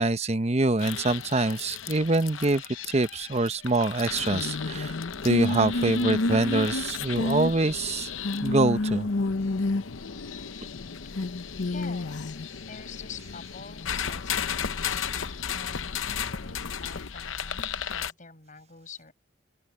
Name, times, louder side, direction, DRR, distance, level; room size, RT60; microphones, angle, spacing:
voice 1, 0.0-5.0 5.2-8.1 8.4-9.1, right 2 dB, 35° right, 0.8 m, -25 dB
sound 1, 0.8-18.1, left 4 dB, 80° left, 0.8 m, -31 dB
voice 2, 11.6-15.1 15.4-19.1, left 5 dB, 40° left, 7.4 m, -46 dB
open air
head